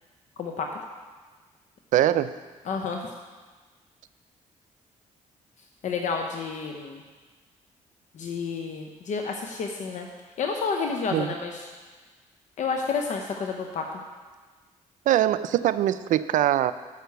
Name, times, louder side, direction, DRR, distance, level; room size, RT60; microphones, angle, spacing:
voice 1, 0.4-0.7 2.7-3.1 5.8-7.0 8.1-10.1 10.4-11.7 12.6-13.9, left 5 dB, 65° left, 3 dB, 0.8 m, -30 dB
voice 2, 1.9-2.3 11.1-11.3 15.1-16.7, right 12 dB, 70° right, 14 dB, 0.4 m, -22 dB
6.7 x 6.5 x 6.8 m, 1.4 s
cardioid pair, 80°, 14 cm